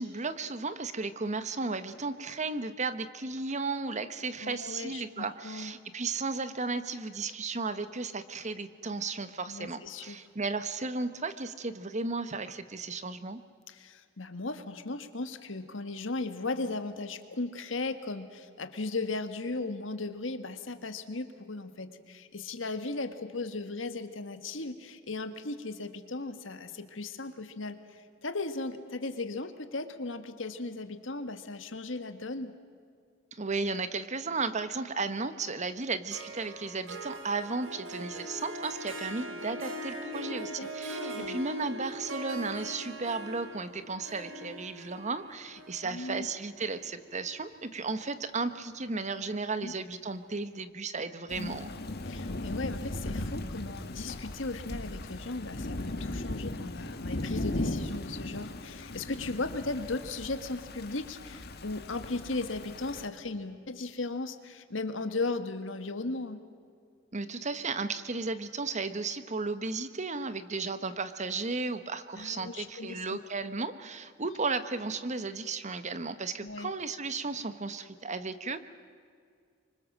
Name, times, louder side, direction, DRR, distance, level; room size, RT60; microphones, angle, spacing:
voice 1, 0.0-13.4 33.3-51.7 67.1-78.6, right 3 dB, 35° right, 12 dB, 1.1 m, -34 dB
voice 2, 4.4-5.7 9.5-10.2 13.7-32.5 40.0-41.4 45.8-46.3 49.6-49.7 51.3-51.6 52.0-66.4 72.1-73.2 76.4-76.7, left 3 dB, 70° left, 9 dB, 1.7 m, -37 dB
Harp, 36.1-47.5, right 1 dB, 85° right, 2.7 m, -41 dB
Thunder / Rain, 51.3-63.1, left 1 dB, 55° left, 1.6 m, -37 dB
26.5 x 24.5 x 7.5 m, 2.1 s
head